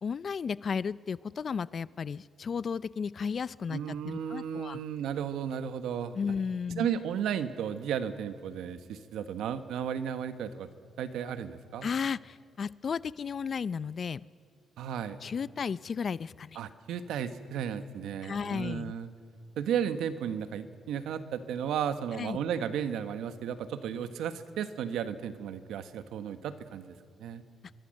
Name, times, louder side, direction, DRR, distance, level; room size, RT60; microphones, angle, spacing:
voice 1, 0.0-4.8 6.1-6.9 11.8-14.2 15.2-16.6 18.2-18.9 22.2-22.4, left 6 dB, 45° left, 19 dB, 0.5 m, -34 dB
voice 2, 3.7-6.1 6.8-10.7 11.0-11.9 14.8-15.2 16.5-19.1 19.6-27.4, right 8 dB, 80° right, 10 dB, 1.3 m, -34 dB
26.5 x 23.0 x 6.6 m, 2.2 s
cardioid pair, 90°, 0 cm